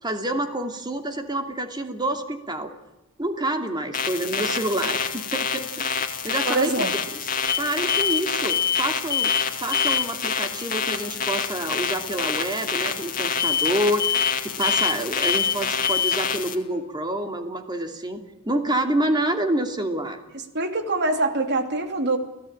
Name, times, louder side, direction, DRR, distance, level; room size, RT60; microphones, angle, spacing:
voice 1, 0.0-2.7 3.2-6.7 7.6-20.2, right 1 dB, 20° right, 5 dB, 2.7 m, -28 dB
sound 1, 3.9-16.6, left 5 dB, 40° left, 2.5 m, -28 dB
voice 2, 6.5-6.9 20.5-22.2, right 2 dB, 50° right, 6 dB, 2.8 m, -24 dB
sound 2, 7.5-7.6 7.9-8.2 8.5-8.8 9.1-9.5 9.7-10.1 13.4-13.7 14.0-14.3 14.6-15.0 15.2-15.6 15.8-16.2, left 7 dB, 15° left, 1.6 m, -23 dB
29.5 x 17.0 x 8.9 m, 1.0 s
head